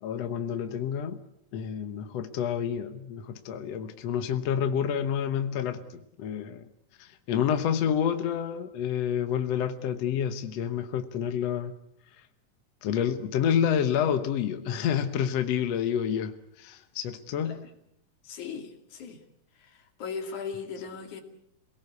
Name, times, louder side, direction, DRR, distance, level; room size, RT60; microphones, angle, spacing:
voice 1, 0.0-1.2 1.5-6.7 7.0-11.7 12.8-17.6, left 8 dB, 65° left, 2.1 m, -29 dB
voice 2, 18.2-19.2 19.6-21.2, left 6 dB, 80° left, 3.9 m, -38 dB
27.5 x 18.5 x 8.3 m
omnidirectional pair, 3.4 m